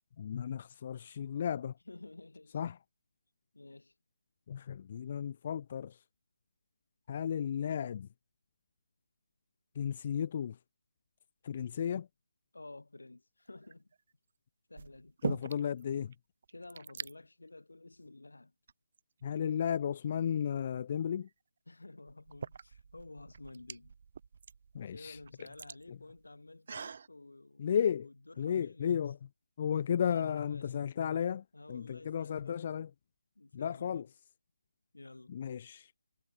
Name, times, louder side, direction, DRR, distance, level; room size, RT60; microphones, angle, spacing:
voice 1, 0.2-1.7 2.5-2.8 4.5-6.0 7.1-8.1 9.8-10.6 11.4-12.1 15.2-16.1 19.2-21.3 24.7-25.2 25.9-26.0 27.6-28.1 28.4-29.2 29.6-32.9 33.5-34.1 35.3-35.9, left 8 dB, 20° left, 0.7 m, -34 dB
voice 2, 1.9-2.6 3.5-3.9 12.5-13.9 14.7-15.2 16.5-18.5 21.7-23.9 24.9-29.0 30.1-30.7 31.5-32.7 33.3-34.1 34.9-35.3, left 2 dB, 80° left, 6.4 m, -52 dB
sound 1, 13.5-14.0 14.8-15.8 16.1-16.2 16.4-17.1 17.9-18.1 18.7-19.6 21.3-21.4 22.1-27.1, right 6 dB, 30° right, 1.1 m, -43 dB
figure-of-eight pair, 175°, 0 cm